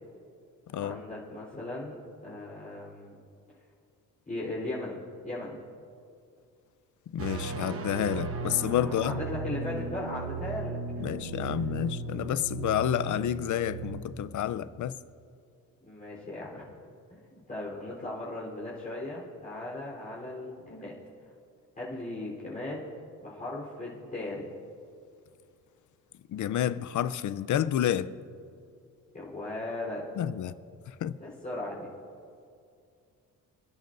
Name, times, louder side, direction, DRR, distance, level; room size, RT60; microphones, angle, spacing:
voice 1, 0.8-3.2 4.3-5.6 8.8-11.1 15.8-21.0 21.8-22.9 23.2-24.5 29.1-30.1 31.2-31.9, left 2 dB, 25° left, 3.8 m, -38 dB
voice 2, 7.1-9.2 11.0-15.0 26.3-28.1 30.2-30.5 30.9-31.1, left 10 dB, 60° left, 0.6 m, -29 dB
sound 1, 7.2-14.0, right 4 dB, 40° right, 1.1 m, -36 dB
27.5 x 10.5 x 2.6 m
cardioid pair, 100°, 35 cm